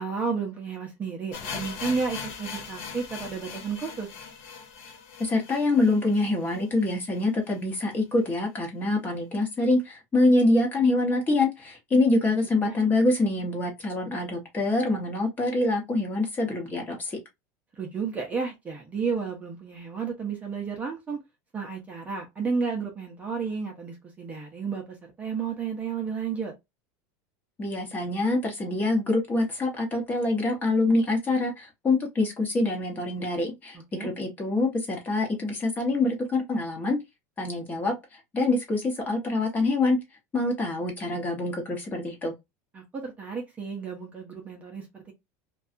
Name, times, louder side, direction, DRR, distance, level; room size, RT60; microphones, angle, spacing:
voice 1, 0.0-4.1 12.6-12.7 17.7-21.2 21.5-26.5 33.7-34.1 42.7-45.1, right 5 dB, 15° right, 0.6 m, -32 dB
sound 1, 1.3-7.2 7.5-7.6 7.8-7.9 8.5-8.6, left 5 dB, 60° left, 0.7 m, -40 dB
voice 2, 5.2-17.2 27.6-37.0 37.4-40.0 40.3-42.3, left 2 dB, 20° left, 0.9 m, -25 dB
2.6 x 2.3 x 2.5 m
supercardioid pair, 155°, 9 cm